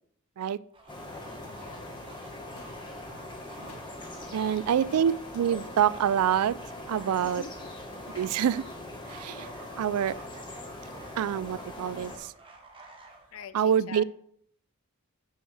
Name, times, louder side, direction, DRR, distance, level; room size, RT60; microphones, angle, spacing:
sound 1, 0.7-13.5, right 3 dB, 25° right, 1.1 m, -53 dB
sound 2, 0.9-12.2, left 1 dB, 20° left, 1.4 m, -42 dB
sound 3, 1.4-1.5 2.5-2.9 3.6-4.0 4.8-5.4 6.6-7.1 7.9-8.8 10.1-10.4, left 2 dB, 90° left, 1.5 m, -53 dB
voice 1, 1.5-2.1 4.8-5.1 7.2-7.7 13.3-14.0, left 6 dB, 65° left, 13 dB, 0.6 m, -45 dB
voice 2, 4.3-6.6 6.9-7.4 8.1-8.6 9.1-9.5 9.8-10.2 11.2-12.3 13.5-14.0, right 9 dB, 85° right, 20 dB, 0.3 m, -26 dB
11.0 x 6.3 x 3.4 m, 0.67 s
head